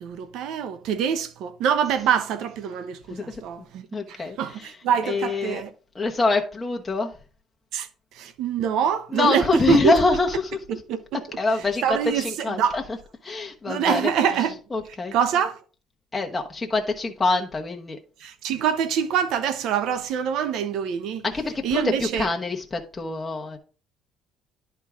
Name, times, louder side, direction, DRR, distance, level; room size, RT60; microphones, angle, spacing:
voice 1, 0.0-5.7 7.7-10.0 10.7-11.0 11.8-12.8 13.7-14.6 15.1-15.6 18.2-21.2 21.6-22.3, right 8 dB, 75° right, 0.9 m, -25 dB
voice 2, 3.1-3.4 3.9-4.7 5.0-5.6 5.9-7.1 9.1-10.5 11.4-12.8 13.2-14.1 14.7-15.1 16.1-18.0 21.2-23.6, left 3 dB, 20° left, 1.1 m, -25 dB
11.0 x 4.6 x 3.6 m
cardioid pair, 105°, 0 cm